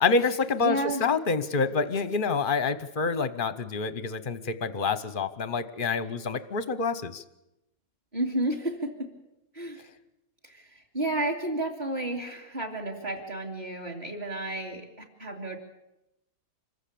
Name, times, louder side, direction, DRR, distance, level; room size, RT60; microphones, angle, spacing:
voice 1, 0.0-7.2, left 4 dB, 40° left, 14 dB, 0.9 m, -27 dB
voice 2, 0.6-1.1 8.1-8.9 9.5-9.8 10.4-15.6, right 1 dB, 25° right, 5 dB, 2.5 m, -31 dB
25.5 x 15.0 x 8.6 m, 0.90 s
omnidirectional pair, 1.7 m